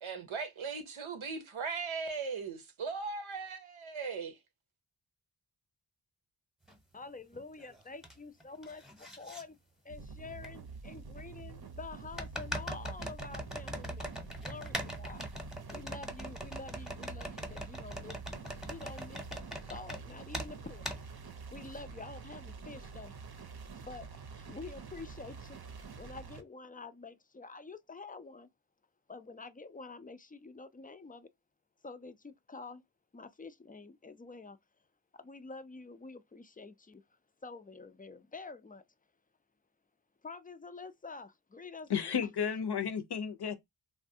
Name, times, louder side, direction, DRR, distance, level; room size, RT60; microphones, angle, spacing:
voice 1, 0.0-4.4, right 5 dB, 85° right, 0.7 m, -38 dB
sound 1, 6.7-6.8 7.3-8.1 8.4-9.4 10.4-10.5 12.2-20.0 20.3-20.5 20.8-21.0, equal, ahead, 0.8 m, -41 dB
voice 2, 6.9-9.6 9.8-15.2 15.7-18.2 18.6-20.8 21.1-21.2 21.5-23.1 23.7-25.6 26.0-28.5 29.1-31.3 31.8-32.8 33.1-34.6 35.1-37.0 37.4-38.8 40.2-42.3, left 3 dB, 20° left, 0.3 m, -48 dB
sound 2, 9.9-26.4, right 5 dB, 55° right, 0.6 m, -47 dB
voice 3, 41.9-43.6, left 7 dB, 55° left, 0.6 m, -33 dB
3.2 x 2.2 x 2.6 m
wide cardioid pair, 50°, 47 cm